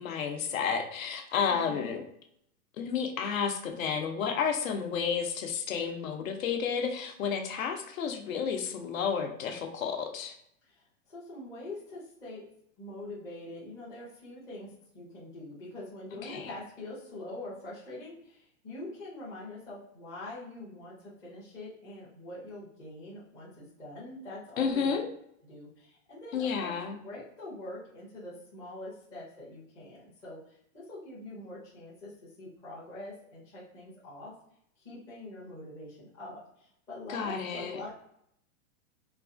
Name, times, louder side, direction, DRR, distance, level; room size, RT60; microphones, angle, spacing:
voice 1, 0.0-2.0 2.8-10.3 16.2-16.5 24.6-25.1 26.3-27.0 37.1-37.8, left 6 dB, 70° left, 4 dB, 0.8 m, -31 dB
voice 2, 1.5-1.9 10.6-12.4 12.8-25.1 25.5-26.7 27.0-32.1 32.4-34.3 34.8-37.9, left 2 dB, 10° left, -9 dB, 0.5 m, -44 dB
4.0 x 2.4 x 2.5 m, 0.73 s
supercardioid pair, 165°, 43 cm